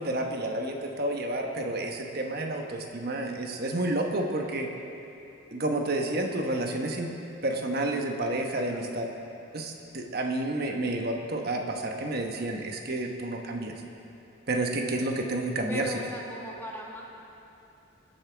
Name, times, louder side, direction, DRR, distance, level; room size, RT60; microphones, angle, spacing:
voice 1, 0.0-4.7 5.5-7.1 7.4-9.1 9.5-13.8 14.5-15.9, right 2 dB, 50° right, 2 dB, 1.1 m, -30 dB
voice 2, 8.7-9.1 15.7-17.0, equal, 10° left, -3 dB, 1.3 m, -39 dB
21.0 x 8.7 x 3.4 m, 2.9 s
head